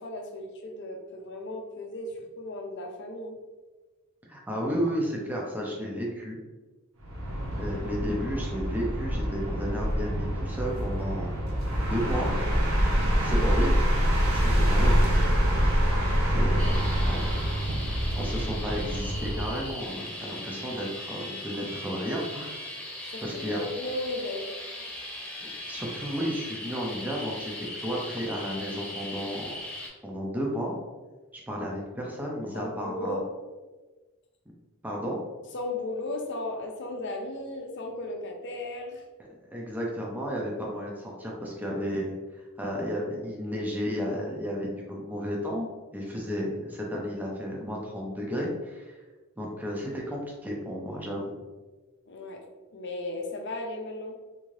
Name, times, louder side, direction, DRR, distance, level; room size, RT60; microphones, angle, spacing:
voice 1, 0.0-3.4 16.6-16.7 23.1-24.5 24.8-25.1 32.5-33.2 35.5-39.0 52.1-52.4 52.7-54.1, left 2 dB, 55° left, 3 dB, 0.6 m, -35 dB
voice 2, 4.3-6.4 7.5-12.3 13.2-13.9 14.3-15.1 16.3-17.3 17.8-22.6 23.2-23.7 25.4-29.6 30.0-30.8 31.3-33.2 34.8-35.2 39.5-42.1 42.6-45.7 45.9-49.0 49.4-51.4, equal, 10° right, -2 dB, 0.5 m, -33 dB
sound 1, 7.0-19.7, equal, 70° right, 0.8 m, -26 dB
sound 2, 16.6-29.9, left 1 dB, 10° left, 1.0 m, -39 dB
3.7 x 2.7 x 3.1 m, 1.3 s
head